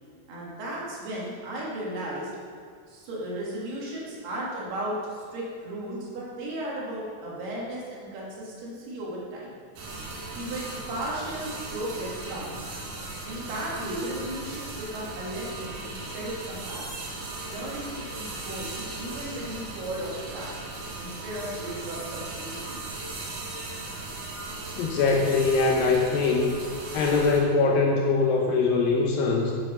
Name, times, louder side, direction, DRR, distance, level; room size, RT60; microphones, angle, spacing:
voice 1, 0.3-2.3 2.9-9.5 10.3-12.7 13.2-17.1 17.5-20.5 21.0-22.9, right 1 dB, 70° right, -5 dB, 4.0 m, -35 dB
sound 1, 9.8-27.4, right 2 dB, 90° right, 4.0 m, -37 dB
voice 2, 24.8-26.5 26.9-29.5, left 4 dB, 75° left, 0 dB, 2.2 m, -22 dB
10.0 x 7.5 x 5.5 m, 2.2 s
omnidirectional pair, 4.9 m